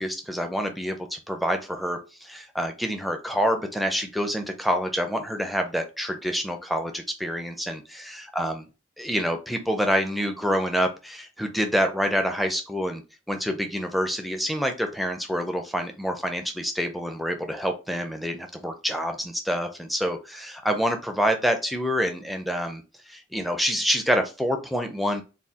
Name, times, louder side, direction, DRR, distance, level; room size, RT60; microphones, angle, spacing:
voice 1, 0.0-8.7 9.0-13.0 13.3-25.2, equal, ahead, 5 dB, 0.5 m, -27 dB
4.1 x 2.3 x 3.6 m, 0.31 s
head